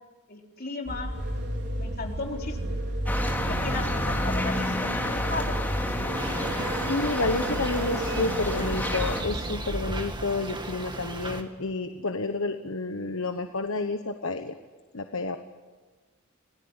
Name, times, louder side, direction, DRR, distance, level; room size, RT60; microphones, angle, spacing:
voice 1, 0.3-1.1 1.8-2.8 3.5-5.6, left 3 dB, 45° left, 1 dB, 4.0 m, -36 dB
sound 1, 0.9-10.0, right 1 dB, 55° right, 4.7 m, -32 dB
sound 2, 3.1-9.2, left 1 dB, 10° left, 3.1 m, -30 dB
sound 3, 6.1-11.4, right 2 dB, 20° right, 2.0 m, -37 dB
voice 2, 6.6-14.6 14.9-15.4, left 3 dB, 70° left, 6 dB, 1.2 m, -30 dB
26.5 x 18.0 x 9.8 m, 1.3 s
head